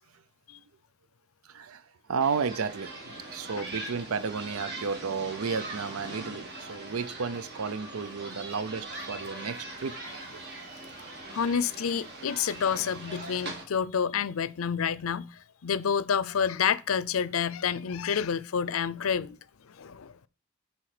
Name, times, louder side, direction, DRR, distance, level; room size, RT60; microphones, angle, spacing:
voice 1, 1.5-1.8 2.1-10.0 10.4-10.9, right 5 dB, 90° right, 0.6 m, -33 dB
sound 1, 2.2-13.6, right 2 dB, 55° right, 2.0 m, -41 dB
voice 2, 11.3-19.4 19.6-20.2, left 7 dB, 80° left, 0.5 m, -29 dB
10.0 x 4.5 x 4.9 m
head